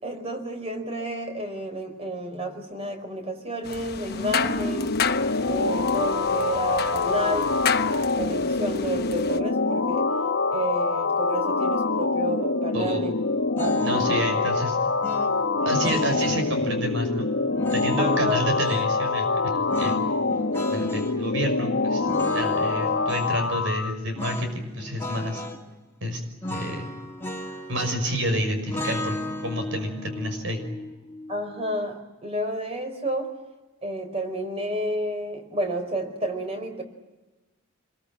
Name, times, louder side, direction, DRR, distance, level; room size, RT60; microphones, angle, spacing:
voice 1, 0.0-4.9 5.5-7.6 8.2-10.1 10.5-13.1 13.6-14.2 15.8-16.0 18.0-18.4 31.3-33.3 33.8-36.8, right 1 dB, 30° right, 6 dB, 4.8 m, -30 dB
sound 1, 3.6-9.4, left 6 dB, 50° left, 1.1 m, -31 dB
sound 2, 4.0-24.0, left 3 dB, 75° left, 1.4 m, -25 dB
voice 2, 12.7-13.0 13.8-14.8 15.6-17.3 17.7-20.4 20.7-22.1 22.3-25.4 26.0-26.2 26.5-26.9 27.7-29.1 29.4-30.6, equal, 65° right, 6 dB, 6.0 m, -29 dB
sound 3, 13.6-14.2 15.0-16.5 17.5-18.9 19.7-21.2 22.0-23.4 24.2-24.5 24.8-25.6 26.4-28.2 28.7-31.8, left 1 dB, 10° left, 2.6 m, -34 dB
27.5 x 22.5 x 8.9 m, 1.1 s
head